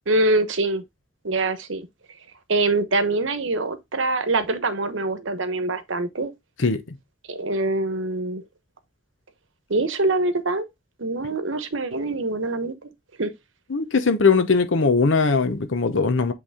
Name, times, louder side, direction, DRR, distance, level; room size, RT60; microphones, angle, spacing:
voice 1, 0.1-0.8 1.2-1.9 2.5-6.3 7.3-8.4 9.7-10.6 11.0-12.9 13.2-13.3, right 2 dB, 75° right, 1.0 m, -24 dB
voice 2, 6.6-7.0 13.7-16.3, left 4 dB, 75° left, 0.9 m, -20 dB
8.0 x 3.4 x 3.5 m
head